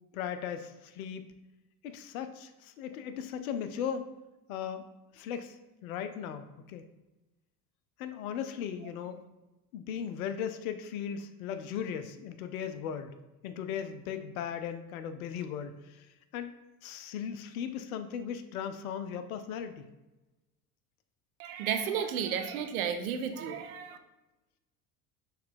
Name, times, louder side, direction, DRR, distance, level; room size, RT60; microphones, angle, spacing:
voice 1, 0.1-1.2 1.8-4.1 4.5-4.8 5.1-6.8 8.0-9.2 9.7-13.1 13.4-16.1 16.3-16.5 16.8-19.9, left 8 dB, 65° left, 10 dB, 0.5 m, -37 dB
voice 2, 21.4-24.0, right 7 dB, 65° right, 8 dB, 0.6 m, -33 dB
4.5 x 3.2 x 3.6 m, 1.1 s
figure-of-eight pair, 65°, 47 cm